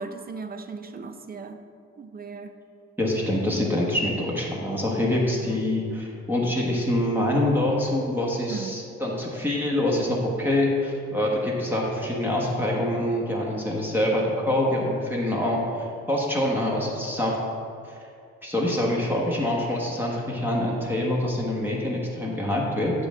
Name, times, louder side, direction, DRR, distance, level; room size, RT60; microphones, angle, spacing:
voice 1, 0.0-1.6 2.0-2.6 5.4-5.6 8.5-8.8, right 4 dB, 30° right, 8 dB, 0.5 m, -37 dB
voice 2, 3.0-17.4 17.9-18.0 18.4-22.9, left 1 dB, 5° right, -4 dB, 1.3 m, -25 dB
8.0 x 3.7 x 6.3 m, 2.4 s
cardioid pair, 90°, 30 cm